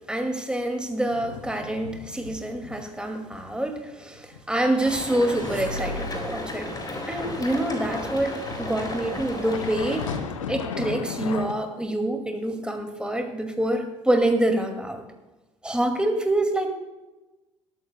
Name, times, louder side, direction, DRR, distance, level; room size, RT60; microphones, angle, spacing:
voice 1, 0.1-6.7 7.1-10.1 10.5-15.0 15.6-16.7, right 1 dB, 5° right, 4 dB, 2.1 m, -26 dB
sound 1, 1.0-2.9 3.3-3.5 3.9-7.5 8.5-11.5, left 6 dB, 80° left, 0.8 m, -36 dB
sound 2, 4.8-10.2, left 1 dB, 25° left, 4.3 m, -34 dB
sound 3, 4.8-6.5, equal, 85° right, 1.3 m, -37 dB
20.0 x 13.5 x 2.2 m, 1.1 s
figure-of-eight pair, 55°, 17 cm